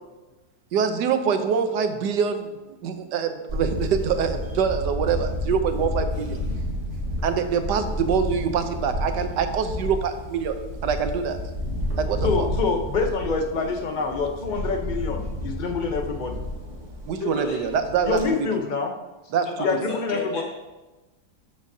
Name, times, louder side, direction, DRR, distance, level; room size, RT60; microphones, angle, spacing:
voice 1, 0.7-2.5 2.8-6.4 7.2-10.6 10.8-11.4 12.0-12.5 17.1-18.2 19.3-19.5, right 6 dB, 80° right, 8 dB, 1.4 m, -24 dB
Camera, 3.5-18.2, left 1 dB, 45° right, 2.1 m, -31 dB
voice 2, 12.2-16.4 18.1-18.9 19.6-20.4, left 4 dB, 40° left, 4 dB, 0.7 m, -26 dB
voice 3, 17.2-17.7 19.4-20.4, left 3 dB, 80° left, -1 dB, 2.4 m, -33 dB
12.5 x 7.2 x 2.7 m, 1.1 s
omnidirectional pair, 1.8 m